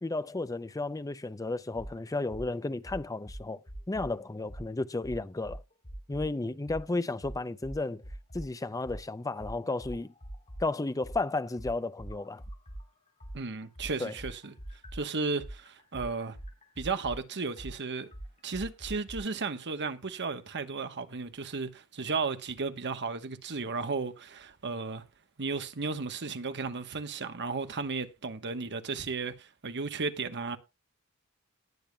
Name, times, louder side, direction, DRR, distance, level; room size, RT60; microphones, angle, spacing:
voice 1, 0.0-3.6 3.9-5.6 6.1-8.0 8.3-10.1 10.6-12.4 14.0-14.1, left 2 dB, 15° left, 0.5 m, -33 dB
sound 1, 1.7-1.9 2.3-2.5 2.8-4.1 4.5-4.7 5.0-6.3 6.7-6.8 7.2-8.5 8.8-12.8 13.2-19.2, right 1 dB, 30° left, 3.6 m, -43 dB
voice 2, 13.3-14.5 14.9-16.4 16.8-18.1 18.4-25.0 25.4-30.6, right 4 dB, 55° right, 1.2 m, -34 dB
19.0 x 7.0 x 2.3 m
head